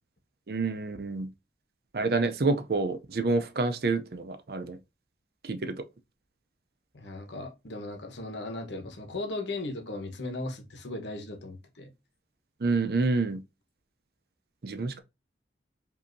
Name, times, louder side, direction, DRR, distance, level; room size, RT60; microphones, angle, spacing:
voice 1, 0.5-1.3 1.9-4.8 5.4-5.8 12.6-13.4 14.6-15.0, right 3 dB, 55° right, 0.5 m, -28 dB
voice 2, 6.9-11.9, left 2 dB, 80° left, 1.1 m, -37 dB
5.1 x 2.8 x 2.6 m
head